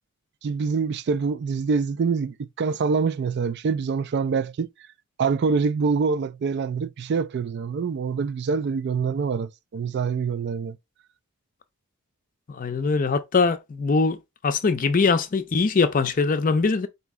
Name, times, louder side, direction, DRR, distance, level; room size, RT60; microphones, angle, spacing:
voice 1, 0.4-4.7 5.2-10.8, right 5 dB, 50° right, 0.3 m, -25 dB
voice 2, 12.5-14.2 14.4-16.9, left 4 dB, 40° left, 0.4 m, -22 dB
4.2 x 2.8 x 3.5 m
head